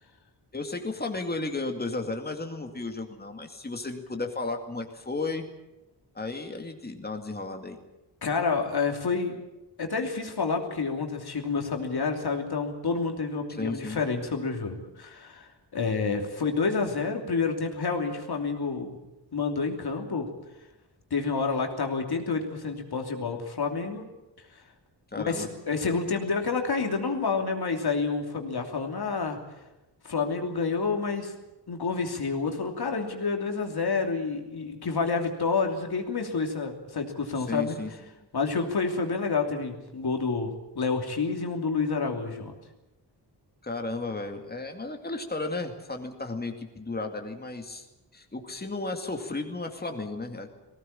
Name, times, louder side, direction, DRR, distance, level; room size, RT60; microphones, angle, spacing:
voice 1, 0.5-5.5 6.1-7.8 13.6-14.0 25.1-25.5 37.4-37.9 43.6-47.9 48.1-50.5, left 3 dB, 25° left, 4 dB, 2.2 m, -34 dB
voice 2, 8.2-9.4 9.8-19.0 19.3-20.3 21.1-24.0 24.5-24.6 25.2-29.4 30.0-31.3 31.7-37.8 38.3-42.5, left 4 dB, 65° left, 3 dB, 3.0 m, -29 dB
20.0 x 17.5 x 8.8 m, 0.97 s
wide cardioid pair, 145°, 42 cm